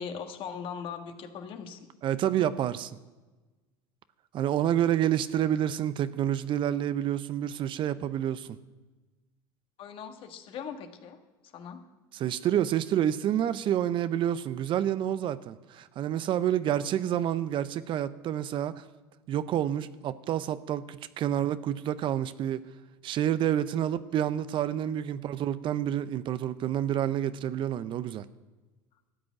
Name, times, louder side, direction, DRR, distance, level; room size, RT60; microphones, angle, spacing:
voice 1, 0.0-1.9 9.8-11.2 11.5-11.8, left 7 dB, 55° left, 6 dB, 1.6 m, -39 dB
voice 2, 2.0-2.9 4.3-8.6 12.1-18.8 19.3-22.6 23.0-28.2, right 11 dB, 50° right, 14 dB, 0.6 m, -28 dB
13.5 x 6.2 x 9.6 m, 1.2 s
hypercardioid pair, 80°, 11 cm